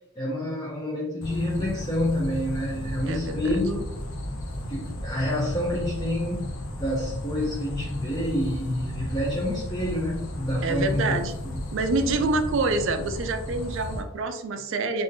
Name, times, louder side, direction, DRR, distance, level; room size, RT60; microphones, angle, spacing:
voice 1, 0.2-3.9 4.7-6.5 6.8-11.1, left 1 dB, 20° left, -4 dB, 0.5 m, -28 dB
sound 1, 1.2-14.0, left 1 dB, 65° left, 0.6 m, -34 dB
voice 2, 3.1-3.4 10.6-11.4 11.7-15.0, right 3 dB, 60° right, 7 dB, 0.4 m, -26 dB
3.4 x 2.6 x 2.6 m, 0.83 s
head